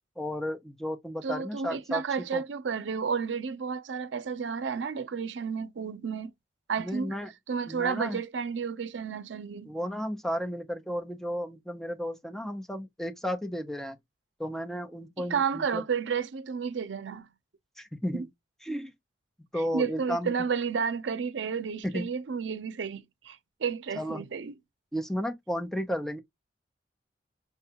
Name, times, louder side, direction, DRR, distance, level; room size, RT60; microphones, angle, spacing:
voice 1, 0.2-2.4 6.8-7.3 7.7-8.2 9.7-14.0 14.4-15.8 17.8-18.3 18.6-18.9 19.5-20.3 21.8-22.1 23.9-24.2 24.9-26.2, equal, ahead, 0.5 m, -33 dB
voice 2, 1.2-6.3 6.7-7.2 7.5-9.7 15.2-17.3 18.1-18.3 19.6-24.6, right 6 dB, 85° right, 0.5 m, -32 dB
5.7 x 2.3 x 2.8 m
head